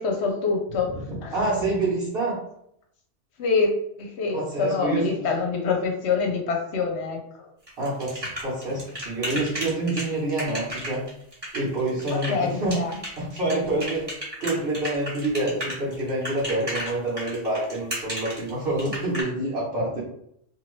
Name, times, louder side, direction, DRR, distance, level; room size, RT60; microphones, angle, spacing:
voice 1, 0.0-0.9 1.2-1.3 3.4-3.7 4.0-7.5 12.1-13.0, left 4 dB, 65° left, 2 dB, 0.8 m, -26 dB
voice 2, 1.1-2.3 4.3-5.2 7.8-11.0 11.5-12.7 13.2-14.0 14.4-20.0, right 2 dB, 55° right, -9 dB, 1.1 m, -27 dB
sound 1, 7.7-19.2, equal, 20° right, 1.0 m, -33 dB
2.9 x 2.5 x 3.0 m, 0.73 s
omnidirectional pair, 1.3 m